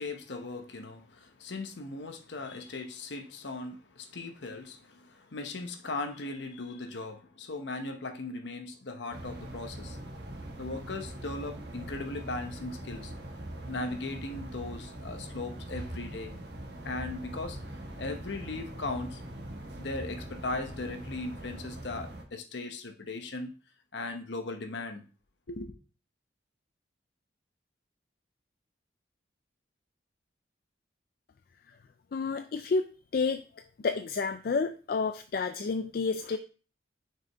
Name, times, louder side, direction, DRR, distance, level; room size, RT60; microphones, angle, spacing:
voice 1, 0.0-10.0 10.6-13.1 13.6-16.3 16.8-17.6 18.0-19.2 19.8-23.5 23.9-25.0 25.5-25.7, left 2 dB, 70° left, 0.9 m, -38 dB
sound 1, 9.1-22.2, right 1 dB, 60° right, 1.2 m, -42 dB
voice 2, 32.1-32.9 33.1-33.4 33.8-36.4, left 4 dB, 50° left, 0.3 m, -30 dB
6.2 x 4.6 x 3.5 m
head